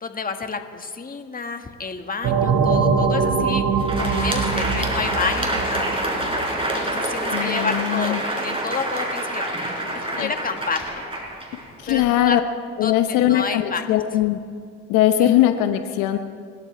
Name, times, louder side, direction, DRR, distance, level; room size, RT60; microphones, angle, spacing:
voice 1, 0.0-5.9 6.7-11.0 11.9-12.4 12.8-14.0 15.2-15.3, left 4 dB, 30° left, 6 dB, 1.8 m, -30 dB
sound 1, 2.2-6.6, right 5 dB, 65° right, 2.0 m, -22 dB
Crowd, 3.7-12.1, right 1 dB, 20° right, 4.2 m, -27 dB
voice 2, 7.3-8.2 10.2-10.3 11.8-12.4 12.8-14.4 14.9-16.2, left 12 dB, 85° left, 8 dB, 0.9 m, -20 dB
28.0 x 13.5 x 3.4 m, 2.1 s
supercardioid pair, 70°, 31 cm